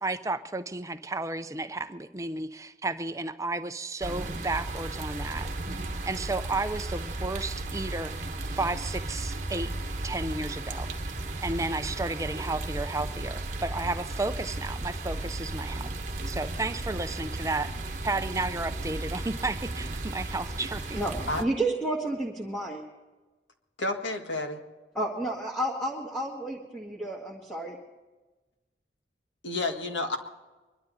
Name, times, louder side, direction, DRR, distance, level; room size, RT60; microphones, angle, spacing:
voice 1, 0.0-5.5 6.1-8.1 8.5-9.7 10.0-10.9 11.4-15.9 16.3-17.7 18.0-21.0, right 2 dB, 15° right, 10 dB, 0.5 m, -32 dB
sound 1, 4.0-21.4, right 2 dB, 40° right, 1.2 m, -35 dB
voice 2, 21.4-22.8 25.0-27.8, right 1 dB, 5° left, -4 dB, 1.8 m, -31 dB
voice 3, 23.8-24.6 29.4-30.2, left 2 dB, 85° left, 4 dB, 1.8 m, -30 dB
24.0 x 12.5 x 4.1 m, 1.2 s
head